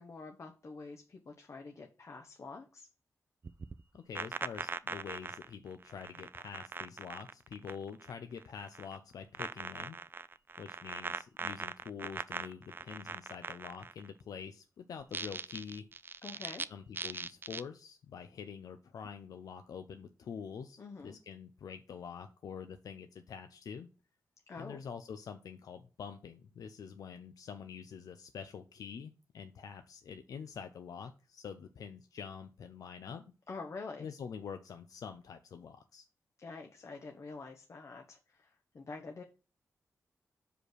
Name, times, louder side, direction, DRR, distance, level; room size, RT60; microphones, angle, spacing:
voice 1, 0.0-2.9 16.2-16.7 20.8-21.2 24.5-24.8 33.5-34.1 36.4-39.2, left 4 dB, 55° left, 3 dB, 1.0 m, -46 dB
sound 1, 3.4-8.1 8.4-9.0 9.3-14.1 15.0-16.6 16.9-17.6, right 4 dB, 35° right, 0.4 m, -41 dB
voice 2, 3.9-10.0 10.6-15.9 16.7-23.9 24.6-33.3 34.0-36.1, left 7 dB, 85° left, 8 dB, 0.5 m, -46 dB
5.0 x 5.0 x 6.2 m, 0.35 s
cardioid pair, 70°, 6 cm